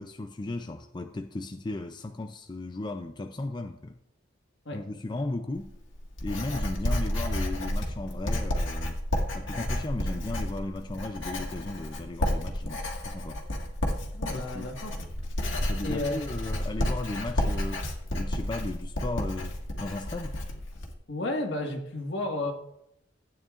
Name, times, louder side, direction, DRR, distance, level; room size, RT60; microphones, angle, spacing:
voice 1, 0.0-4.0 4.7-5.8 6.2-9.0 9.3-13.4 14.3-14.7 15.7-17.9 18.1-20.4, left 2 dB, 25° left, 0.5 m, -36 dB
Writing, 5.5-20.9, left 1 dB, 90° left, 1.8 m, -31 dB
voice 2, 14.1-14.9 15.8-16.2 21.1-22.5, left 2 dB, 70° left, 1.7 m, -32 dB
15.5 x 9.1 x 2.5 m
head